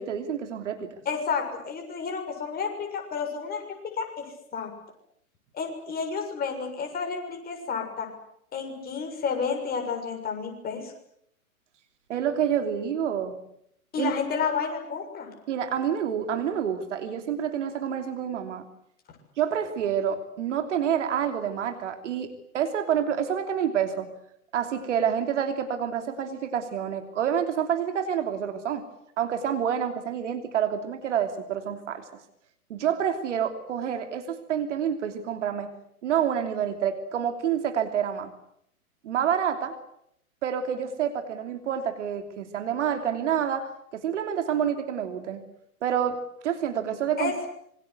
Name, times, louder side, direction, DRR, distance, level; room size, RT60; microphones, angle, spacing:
voice 1, 0.0-0.9 12.1-13.4 14.0-14.1 15.5-18.6 19.4-24.1 24.5-28.8 29.2-32.1 32.7-35.7 36.0-38.3 39.0-39.7 40.4-45.4 45.8-47.3, right 8 dB, 55° right, 7 dB, 3.1 m, -28 dB
voice 2, 1.1-3.6 3.9-4.7 5.5-8.1 8.5-10.9 13.9-15.3 47.2-47.5, left 5 dB, 20° left, 3 dB, 7.0 m, -31 dB
26.5 x 24.5 x 8.2 m, 0.73 s
figure-of-eight pair, 115°, 44 cm